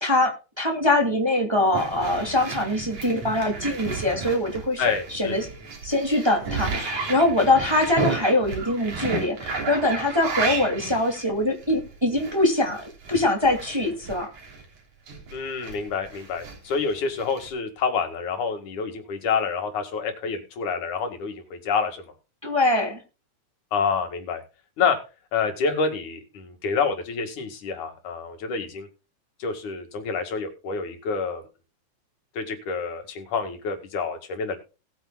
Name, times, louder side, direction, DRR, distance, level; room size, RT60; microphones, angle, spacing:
voice 1, 0.0-5.5 5.8-12.8 13.1-14.3 22.4-23.0, left 1 dB, 10° right, 2 dB, 2.2 m, -23 dB
sound 1, 1.7-14.6 15.1-17.5, right 4 dB, 70° right, 4.7 m, -33 dB
voice 2, 4.8-5.4 15.3-22.1 23.7-24.4 24.8-25.0 25.3-28.9 29.4-31.4 32.4-34.6, left 5 dB, 85° left, 6 dB, 3.4 m, -28 dB
19.0 x 9.2 x 2.3 m, 0.31 s
omnidirectional pair, 3.3 m